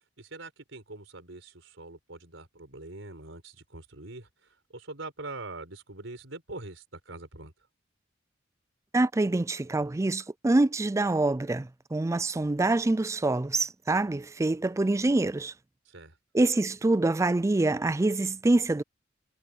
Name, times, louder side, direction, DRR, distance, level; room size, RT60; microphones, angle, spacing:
voice 1, 0.2-7.5 15.8-16.2, right 2 dB, 85° right, 4.4 m, -43 dB
voice 2, 8.9-15.5 16.3-18.8, right 2 dB, 15° right, 0.4 m, -25 dB
head